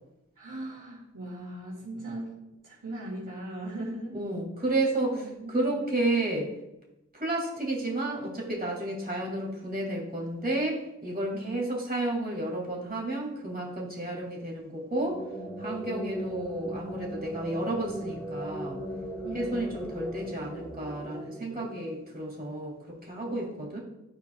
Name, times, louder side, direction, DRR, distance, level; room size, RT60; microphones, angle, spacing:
voice 1, 0.4-4.2 5.1-5.8 11.3-11.6 19.2-19.6 23.2-23.7, right 1 dB, 85° right, -4 dB, 2.0 m, -39 dB
voice 2, 4.1-6.5 7.1-15.2 15.6-18.8 19.3-23.8, right 2 dB, 30° right, -3 dB, 2.1 m, -31 dB
sound 1, 14.8-22.3, right 1 dB, 10° left, 1.4 m, -38 dB
12.5 x 4.5 x 2.2 m, 0.92 s
wide cardioid pair, 45°, 30 cm